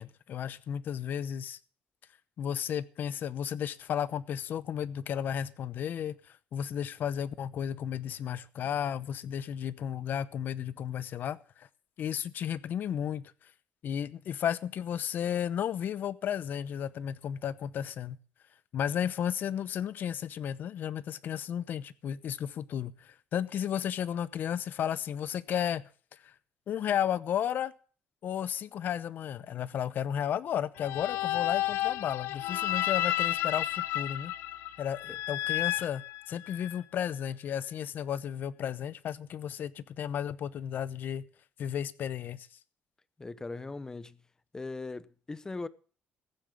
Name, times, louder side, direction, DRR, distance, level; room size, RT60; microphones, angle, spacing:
voice 1, 0.0-1.6 2.4-11.7 12.0-13.5 13.8-18.2 18.7-26.3 26.7-27.7 28.2-34.3 34.8-41.2 41.6-42.5, left 9 dB, 55° left, 0.8 m, -33 dB
sound 1, 30.8-36.8, left 14 dB, 85° left, 0.7 m, -31 dB
voice 2, 43.2-44.2 44.5-45.7, left 3 dB, 15° left, 0.7 m, -39 dB
15.5 x 7.4 x 6.9 m
cardioid pair, 120°, 4 cm